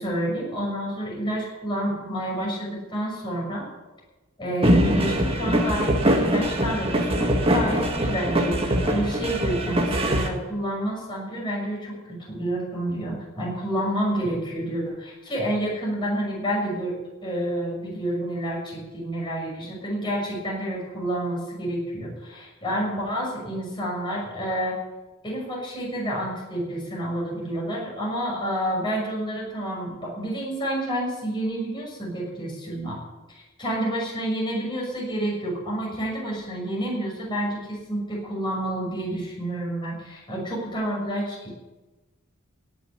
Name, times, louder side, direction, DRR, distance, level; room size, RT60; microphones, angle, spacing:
voice 1, 0.0-3.7 4.4-16.9 17.2-24.8 25.2-33.0 33.6-41.5, right 1 dB, 25° left, -4 dB, 6.5 m, -29 dB
sound 1, 4.6-10.3, equal, 30° right, 1.8 m, -22 dB
18.0 x 7.2 x 9.9 m, 1.1 s
head